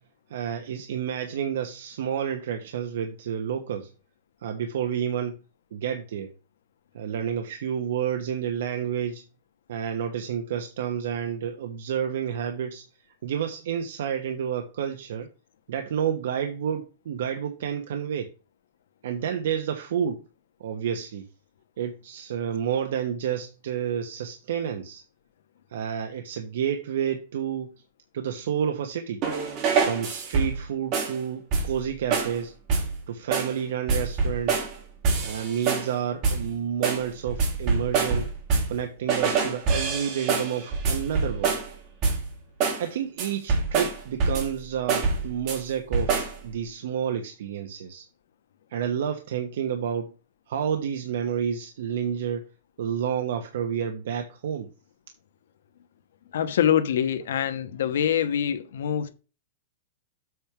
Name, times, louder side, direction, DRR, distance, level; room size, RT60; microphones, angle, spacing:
voice 1, 0.3-3.9 4.4-5.4 5.7-6.3 6.9-9.2 9.7-12.8 13.2-15.3 15.7-18.3 19.0-20.2 20.6-21.2 21.8-25.0 25.7-27.7 28.1-29.2 29.8-32.5 33.1-34.6 35.2-38.3 38.7-41.6 42.8-48.1 48.7-50.1 50.5-52.4 52.8-54.7, right 8 dB, 65° right, 1.0 m, -30 dB
sound 1, 29.2-30.6 30.9-31.2 31.5-31.8 32.1-32.4 32.7-33.0 33.3-33.6 33.9-34.8 35.0-35.9 36.2-36.5 36.8-38.8 39.1-41.7 42.0-42.3 42.6-42.9 43.2-44.6 44.9-45.6 45.9-46.4, right 4 dB, 30° right, 2.0 m, -25 dB
voice 2, 56.3-59.1, left 9 dB, 75° left, 1.1 m, -24 dB
7.8 x 3.6 x 5.8 m
supercardioid pair, 175°, 0 cm